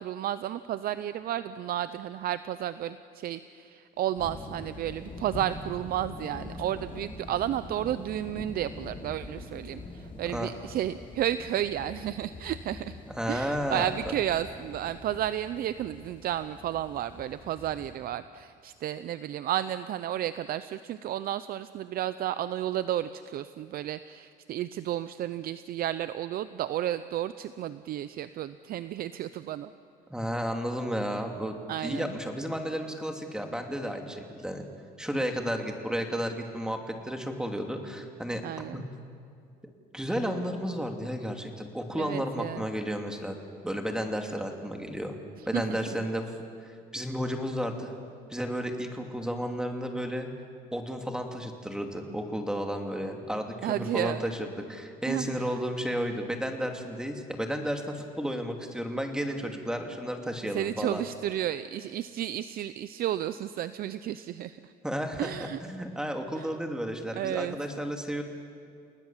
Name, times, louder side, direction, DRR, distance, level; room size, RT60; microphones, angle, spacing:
voice 1, 0.0-13.0 13.3-29.7 31.7-32.1 38.4-38.8 42.0-42.6 45.5-45.8 53.6-54.2 55.1-55.6 60.5-64.7 65.2-65.6 66.4-66.5 67.2-67.6, right 12 dB, 60° right, 13 dB, 0.6 m, -32 dB
sound 1, 4.2-17.9, left 2 dB, 30° left, 3.3 m, -44 dB
voice 2, 13.1-14.1 30.1-31.6 31.8-34.6 35.0-38.4 38.7-38.9 39.9-43.4 43.6-45.1 45.5-46.3 46.6-48.0 48.3-50.3 50.7-61.0 64.8-68.2, equal, 5° right, 3 dB, 2.7 m, -32 dB
29.5 x 19.0 x 7.4 m, 2.3 s
cardioid pair, 110°, 17 cm